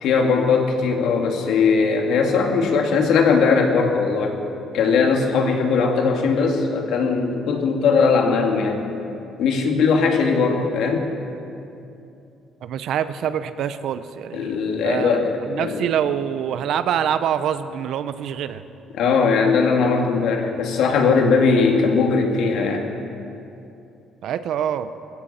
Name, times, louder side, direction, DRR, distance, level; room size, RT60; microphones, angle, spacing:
voice 1, 0.0-4.4 4.7-8.8 9.4-11.1 14.3-15.8 18.9-22.9, left 5 dB, 70° left, 2 dB, 2.2 m, -19 dB
voice 2, 12.6-14.5 14.8-18.6 24.2-24.9, right 9 dB, 60° right, 12 dB, 0.7 m, -25 dB
21.5 x 15.5 x 4.3 m, 2.7 s
cardioid pair, 155°, 0 cm